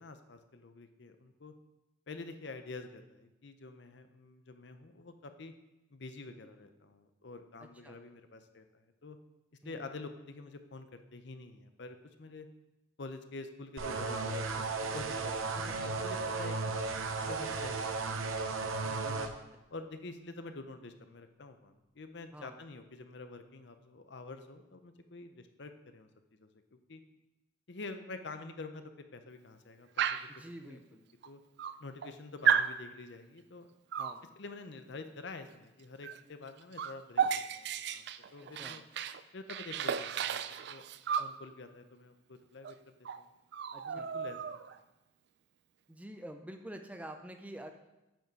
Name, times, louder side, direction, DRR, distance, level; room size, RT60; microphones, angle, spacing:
voice 1, 0.0-1.5 2.1-5.5 5.9-9.2 9.6-12.5 13.0-16.8 17.2-19.3 19.7-26.1 26.4-27.0 27.7-30.2 30.6-30.8 31.2-31.4 31.8-33.7 34.4-37.7 37.9-38.8 39.3-40.8 41.2-43.3 43.9-44.6, left 3 dB, 55° left, 8 dB, 0.6 m, -47 dB
voice 2, 7.6-8.0 9.6-9.8 15.5-15.9 22.3-22.6 30.3-31.1 34.0-34.2 38.4-38.8 43.7-44.1 45.9-47.7, right 1 dB, 5° right, 5 dB, 0.5 m, -48 dB
sound 1, 13.8-19.3, right 3 dB, 90° right, 0.7 m, -35 dB
Dog, 30.0-30.4 31.2-31.3 31.6-32.1 32.4-32.8 33.9-34.2 36.0-36.2 36.5-39.2 39.5-41.3 42.6-42.7 43.0-43.2 43.5-44.8, right 7 dB, 55° right, 0.3 m, -33 dB
9.0 x 5.4 x 4.8 m, 0.97 s
head